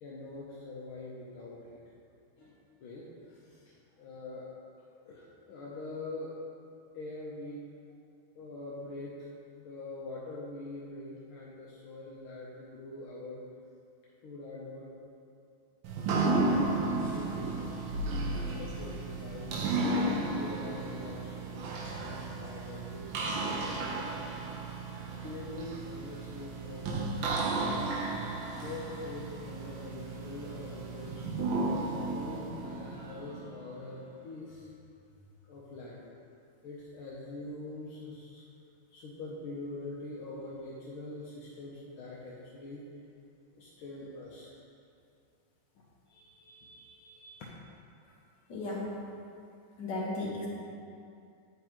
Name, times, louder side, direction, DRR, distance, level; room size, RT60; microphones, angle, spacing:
voice 1, 0.0-1.8 2.4-3.6 4.0-4.5 5.1-6.3 6.9-7.6 8.3-9.3 9.5-13.4 14.2-14.9 16.1-24.1 25.2-27.9 28.5-31.6 32.1-34.7 35.4-36.1 36.6-38.4 38.9-42.8 43.5-44.5 45.8-47.4, left 2 dB, 80° left, -5 dB, 1.6 m, -44 dB
sound 1, 15.8-33.7, right 2 dB, 75° right, 1.4 m, -34 dB
voice 2, 48.5-49.0 49.8-50.5, left 2 dB, 60° left, -6 dB, 1.9 m, -35 dB
8.3 x 5.7 x 3.0 m, 2.5 s
omnidirectional pair, 2.3 m